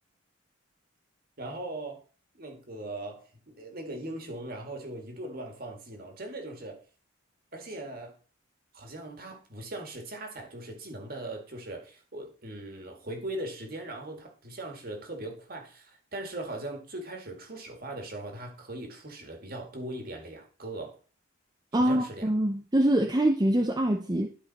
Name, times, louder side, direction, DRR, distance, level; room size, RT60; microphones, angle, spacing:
voice 1, 1.4-2.0 2.4-6.8 7.5-8.1 8.7-21.0 21.7-22.3, right 1 dB, 45° right, 2.0 m, -39 dB
voice 2, 21.7-24.3, right 1 dB, 20° right, 0.6 m, -24 dB
12.0 x 4.9 x 4.2 m
head